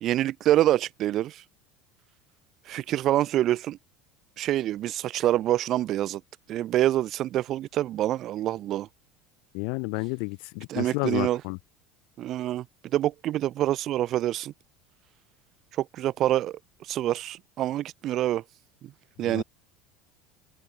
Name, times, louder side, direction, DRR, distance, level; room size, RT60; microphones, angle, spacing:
voice 1, 0.0-1.4 2.7-3.8 4.4-6.2 6.5-8.9 10.7-11.4 12.2-14.5 15.7-18.4 18.8-18.9 19.2-19.4, right 13 dB, 45° right, 0.5 m, -26 dB
voice 2, 9.5-11.6 19.2-19.4, left 40 dB or more, 70° left, 1.2 m, -31 dB
open air
supercardioid pair, 125°, 0 cm